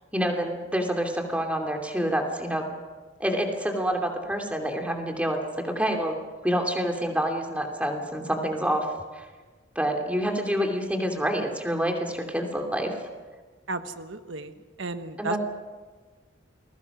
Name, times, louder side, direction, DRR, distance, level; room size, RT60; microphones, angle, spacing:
voice 1, 0.1-2.7 3.2-8.9 9.1-9.2 9.7-12.9 15.2-15.4, equal, 5° right, 3 dB, 2.9 m, -27 dB
voice 2, 13.7-14.5 14.8-15.4, right 3 dB, 80° right, 9 dB, 1.2 m, -33 dB
29.5 x 21.0 x 6.1 m, 1.4 s
head